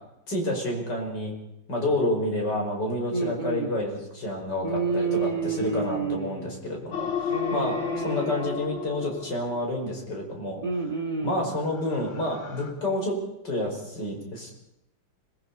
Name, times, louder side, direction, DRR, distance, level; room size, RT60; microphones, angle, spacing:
voice 1, 0.3-1.3 1.7-10.6 11.2-13.2 13.4-14.5, left 1 dB, 55° left, 0 dB, 6.0 m, -29 dB
voice 2, 3.1-3.7 4.6-6.5 7.3-8.5 10.6-11.5, right 4 dB, 20° right, 4 dB, 3.5 m, -29 dB
sound 1, 6.9-10.1 11.5-12.7, left 7 dB, 85° left, 2.9 m, -34 dB
25.5 x 20.5 x 5.6 m, 0.82 s
omnidirectional pair, 2.3 m